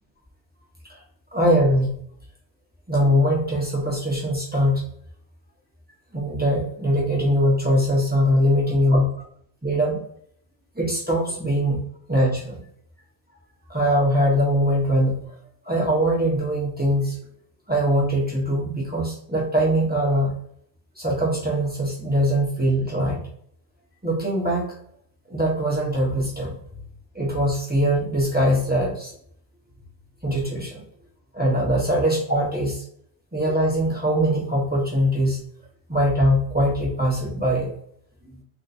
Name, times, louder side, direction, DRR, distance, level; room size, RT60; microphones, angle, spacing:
voice 1, 1.3-2.0 2.9-4.9 6.1-9.1 9.6-10.0 10.7-11.8 12.1-12.6 13.7-15.3 15.6-17.2 17.7-20.3 21.0-23.3 24.0-24.7 25.3-26.8 27.1-29.1 30.2-30.8 31.3-32.8 33.3-35.4 35.9-37.7 38.3-38.4, equal, 10° right, -4 dB, 0.8 m, -22 dB
3.6 x 2.5 x 2.6 m, 0.66 s
omnidirectional pair, 1.1 m